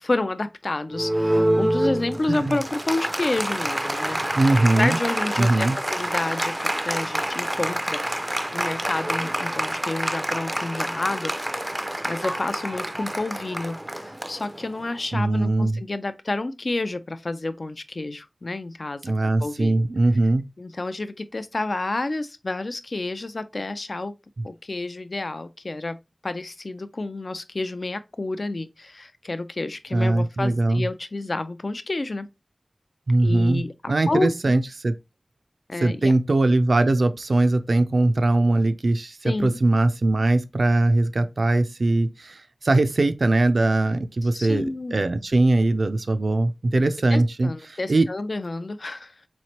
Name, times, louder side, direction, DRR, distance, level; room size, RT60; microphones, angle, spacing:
voice 1, 0.0-4.2 4.7-8.2 8.5-19.1 19.4-19.8 20.6-24.1 24.4-26.0 26.2-32.3 33.2-34.3 35.7-36.1 39.2-39.6 44.3-45.1 47.1-49.2, left 2 dB, 65° left, 0.3 m, -29 dB
Applause, 0.9-15.0, right 1 dB, 20° right, 0.3 m, -27 dB
voice 2, 4.4-5.0 5.4-5.8 15.1-15.8 19.0-20.5 24.4-24.5 29.9-30.8 33.1-34.9 35.8-48.1, right 2 dB, 85° right, 0.4 m, -21 dB
4.1 x 3.1 x 2.8 m
wide cardioid pair, 60°, 0 cm